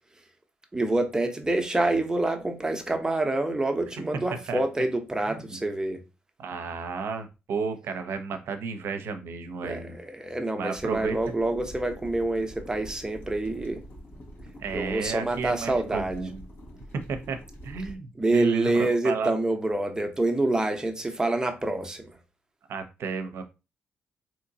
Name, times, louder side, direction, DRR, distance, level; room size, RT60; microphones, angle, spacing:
voice 1, 0.7-6.0 9.6-13.8 14.7-16.2 18.2-22.1, right 2 dB, 15° right, 0.8 m, -27 dB
voice 2, 4.1-4.6 5.3-5.6 6.4-10.0 10.6-11.2 14.6-16.4 16.9-19.3 22.7-23.4, right 5 dB, 70° right, 0.7 m, -32 dB
sound 1, 10.7-17.9, equal, 55° left, 1.4 m, -45 dB
3.7 x 3.0 x 2.7 m
supercardioid pair, 60°, 4 cm